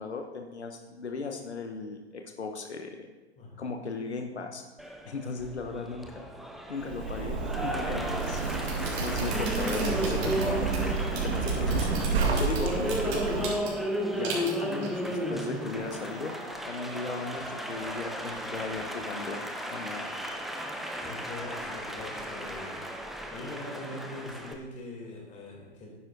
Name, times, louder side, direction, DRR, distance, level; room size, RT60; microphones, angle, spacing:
voice 1, 0.0-3.1 3.6-4.6 5.1-6.3 6.7-8.4 9.0-10.7 11.1-11.9 12.4-13.6 14.1-16.3 16.7-20.1, left 4 dB, 85° left, 4 dB, 0.9 m, -37 dB
voice 2, 3.4-3.7 21.0-22.8 23.3-25.9, left 2 dB, 20° left, -1 dB, 2.6 m, -42 dB
Applause, 4.8-24.5, equal, ahead, 0.4 m, -35 dB
Zipper (clothing), 6.8-13.5, right 4 dB, 70° right, 1.6 m, -30 dB
sound 1, 7.9-16.5, right 3 dB, 50° right, 3.4 m, -41 dB
11.5 x 9.7 x 2.6 m, 1.2 s
figure-of-eight pair, 105°, 33 cm